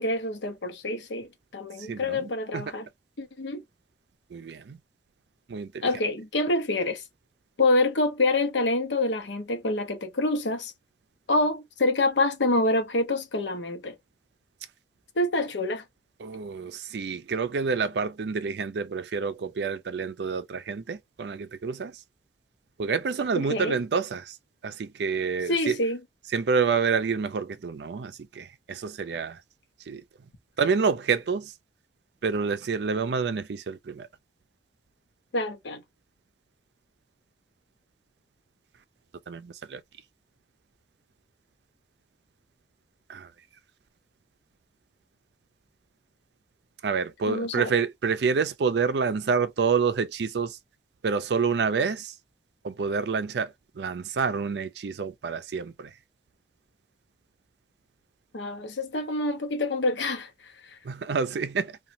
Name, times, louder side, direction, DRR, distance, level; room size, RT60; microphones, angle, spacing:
voice 1, 0.0-2.9 3.2-3.6 5.8-7.0 7.6-10.7 11.3-14.0 15.2-15.8 23.3-23.8 25.5-26.0 35.3-35.8 47.3-47.7 58.3-60.3, left 2 dB, 85° left, 0.7 m, -26 dB
voice 2, 1.9-2.7 4.3-4.8 5.5-5.9 16.2-21.9 22.8-24.4 24.6-25.8 26.3-29.4 29.9-30.0 30.6-31.5 32.2-34.1 39.3-39.8 43.1-43.3 46.8-50.6 51.0-52.1 52.6-55.9 60.8-61.8, right 5 dB, 70° right, 0.4 m, -28 dB
3.0 x 2.3 x 2.6 m
head